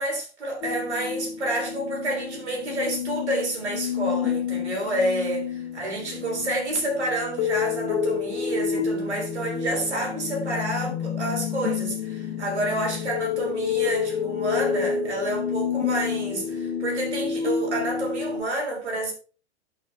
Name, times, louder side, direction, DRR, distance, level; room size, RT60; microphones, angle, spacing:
voice 1, 0.0-5.4 5.7-19.1, right 1 dB, 85° right, 3.7 m, -29 dB
sound 1, 0.6-18.4, left 7 dB, 60° left, 1.5 m, -29 dB
12.0 x 5.8 x 3.4 m
hypercardioid pair, 95°, 33 cm